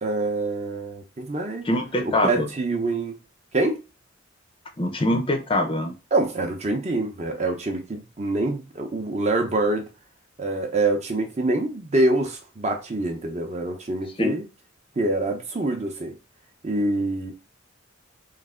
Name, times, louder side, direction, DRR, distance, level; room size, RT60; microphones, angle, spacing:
voice 1, 0.0-1.7 2.0-3.2 3.5-3.8 6.1-9.9 10.4-14.4 15.0-16.2 16.6-17.3, right 2 dB, 35° right, 0.7 m, -25 dB
voice 2, 1.7-2.5 4.8-5.9 14.2-14.3, left 1 dB, 25° left, 0.5 m, -23 dB
3.2 x 2.5 x 3.7 m
head